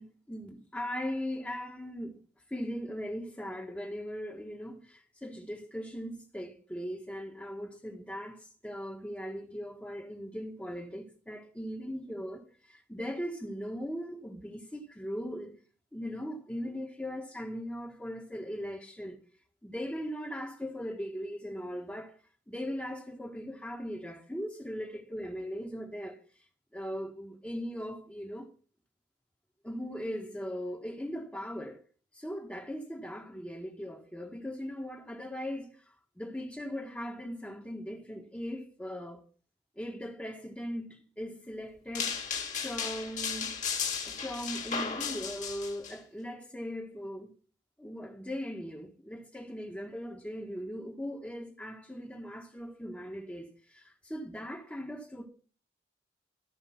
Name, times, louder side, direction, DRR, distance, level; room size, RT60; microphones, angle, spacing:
voice 1, 0.0-2.2 2.5-15.6 15.9-19.2 19.6-22.2 22.5-26.2 26.7-28.5 29.6-31.8 32.1-35.8 36.2-39.2 39.8-42.2 42.6-43.5 44.0-47.3 47.8-55.3, equal, 5° left, 1.4 m, -39 dB
sound 1, 42.0-45.9, left 6 dB, 45° left, 2.0 m, -35 dB
13.5 x 5.0 x 5.8 m
head